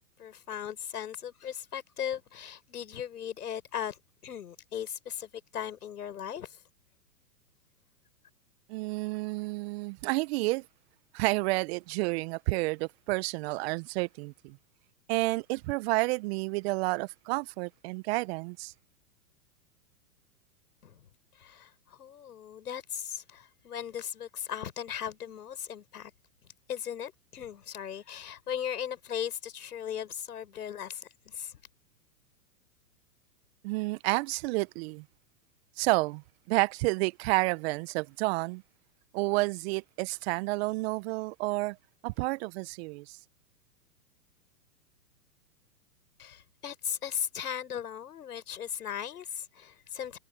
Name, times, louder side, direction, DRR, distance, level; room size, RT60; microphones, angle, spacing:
voice 1, 0.0-6.6 20.8-21.1 21.3-26.1 26.7-31.6 46.2-50.2, left 9 dB, 75° left, 6.0 m, -38 dB
voice 2, 8.7-10.6 11.1-14.6 15.1-18.7 33.6-35.0 35.8-38.6 39.1-41.8 42.0-43.2, right 24 dB, 40° right, 1.2 m, -30 dB
hypercardioid pair, 115°, 46 cm